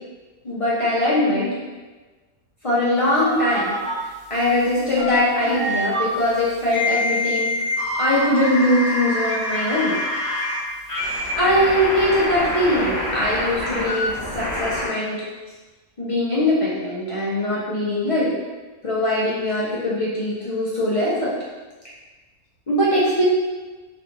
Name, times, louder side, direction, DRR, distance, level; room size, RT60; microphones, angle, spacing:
voice 1, 0.4-1.5 2.6-3.8 4.3-7.5 8.0-10.0 11.4-15.2 16.0-18.3 18.8-21.3 22.7-23.2, left 1 dB, 55° left, -8 dB, 0.3 m, -21 dB
sound 1, 3.0-3.9 4.6-6.0 6.7-10.6 10.9-14.9, left 1 dB, 30° left, 1.2 m, -26 dB
3.2 x 2.9 x 2.8 m, 1.3 s
omnidirectional pair, 1.6 m